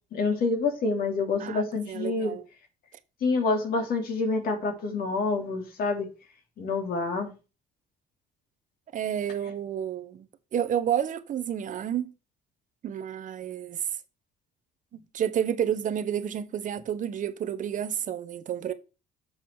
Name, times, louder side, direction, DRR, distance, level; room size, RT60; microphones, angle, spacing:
voice 1, 0.1-2.4 3.2-6.1 6.6-7.3, left 3 dB, 60° left, 3.2 m, -27 dB
voice 2, 1.4-2.4 8.9-10.3 10.5-12.1 12.8-13.9 14.9-18.7, right 9 dB, 50° right, 0.9 m, -30 dB
7.2 x 6.5 x 4.8 m
cardioid pair, 110°, 17 cm